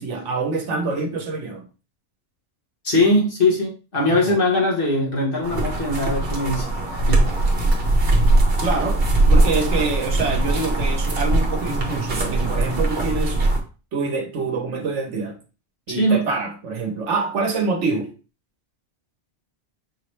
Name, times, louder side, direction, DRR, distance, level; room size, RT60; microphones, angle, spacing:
voice 1, 0.0-1.7 4.1-4.4 8.6-9.0 9.3-13.4 13.9-15.4 15.9-18.1, right 4 dB, 85° right, 1.2 m, -25 dB
voice 2, 2.8-7.3 16.0-16.2, left 1 dB, 50° left, 1.5 m, -21 dB
sound 1, 5.4-13.6, right 2 dB, 55° right, 1.2 m, -20 dB
5.4 x 3.0 x 3.2 m
omnidirectional pair, 1.2 m